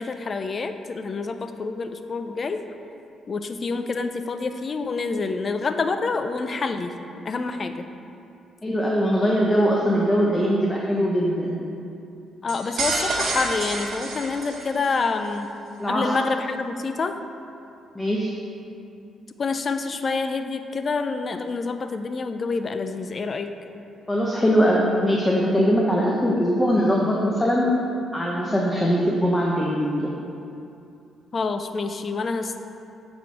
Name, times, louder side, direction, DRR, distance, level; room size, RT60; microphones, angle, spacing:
voice 1, 0.0-2.6 3.3-7.0 7.2-7.9 12.4-15.5 15.9-17.2 19.4-23.6 31.3-32.6, left 4 dB, 40° left, 8 dB, 0.4 m, -27 dB
voice 2, 8.6-11.6 15.8-16.0 17.9-18.3 24.1-27.7 28.1-30.0, equal, 15° left, -3 dB, 0.8 m, -21 dB
sound 1, 12.5-15.0, right 3 dB, 65° right, 1.2 m, -28 dB
7.6 x 4.3 x 4.7 m, 2.7 s
cardioid pair, 90°, 0 cm